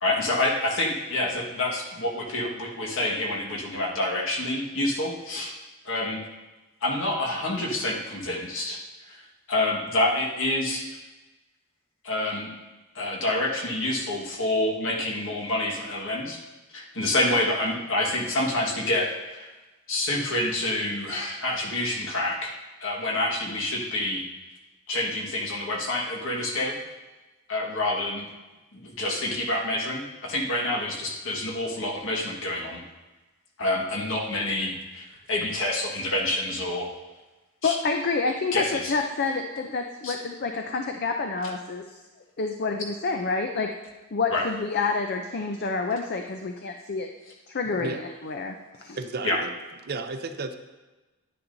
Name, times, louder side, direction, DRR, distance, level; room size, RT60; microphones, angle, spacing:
voice 1, 0.0-5.6 5.8-6.2 6.8-8.8 9.1-10.8 12.0-12.5 12.9-16.4 16.7-19.5 19.9-22.5 22.8-24.2 24.9-26.8 27.5-28.3 28.7-32.8 33.6-36.9 37.6-37.7 38.5-38.9 40.0-40.2 44.3-44.4 49.2-49.4, left 1 dB, 60° left, -1 dB, 1.6 m, -27 dB
voice 2, 37.6-41.8 42.4-43.7 44.1-47.1 47.5-49.0, left 4 dB, 45° left, 4 dB, 0.5 m, -28 dB
voice 3, 49.0-49.5 49.8-50.5, right 3 dB, 45° right, 8 dB, 0.6 m, -33 dB
10.5 x 9.8 x 2.7 m, 1.1 s
head